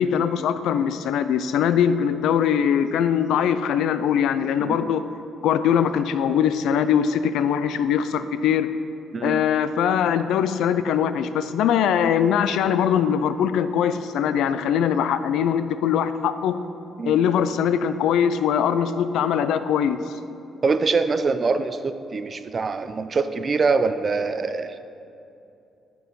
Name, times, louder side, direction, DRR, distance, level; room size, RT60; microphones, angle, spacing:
voice 1, 0.0-5.0 5.4-8.7 9.2-16.6 17.1-20.0, left 8 dB, 85° left, 12 dB, 0.4 m, -22 dB
voice 2, 4.6-4.9 9.1-9.4 17.0-17.2 20.6-24.8, right 4 dB, 40° right, 11 dB, 0.4 m, -24 dB
10.0 x 4.6 x 5.3 m, 2.7 s
cardioid pair, 90°, 0 cm